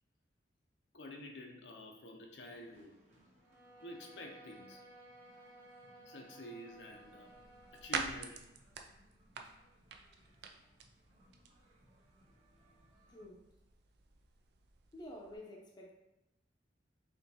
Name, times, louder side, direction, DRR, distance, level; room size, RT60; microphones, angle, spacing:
voice 1, 0.9-2.9 3.8-4.8 6.1-7.3 7.8-8.5, left 1 dB, 75° left, 1 dB, 0.6 m, -49 dB
sound 1, 2.4-13.2, equal, 40° right, 1.0 m, -69 dB
Bowed string instrument, 3.4-8.3, right 1 dB, 10° right, 0.8 m, -58 dB
sound 2, 6.7-15.4, right 5 dB, 60° right, 0.4 m, -47 dB
voice 2, 13.1-13.5 14.9-15.9, left 1 dB, 25° left, -1 dB, 0.6 m, -50 dB
4.3 x 3.1 x 2.7 m, 0.91 s
head